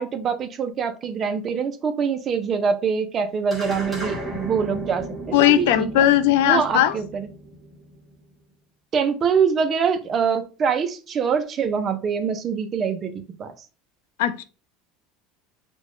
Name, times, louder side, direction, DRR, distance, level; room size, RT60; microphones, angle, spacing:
voice 1, 0.0-5.7 6.0-6.1 6.5-7.3 8.9-13.5, right 6 dB, 25° right, 0.4 m, -24 dB
sound 1, 3.5-8.1, right 1 dB, 5° right, 0.8 m, -35 dB
voice 2, 5.3-7.0 14.2-14.4, left 12 dB, 80° left, 0.3 m, -18 dB
4.0 x 2.1 x 3.0 m
cardioid pair, 180°, 0 cm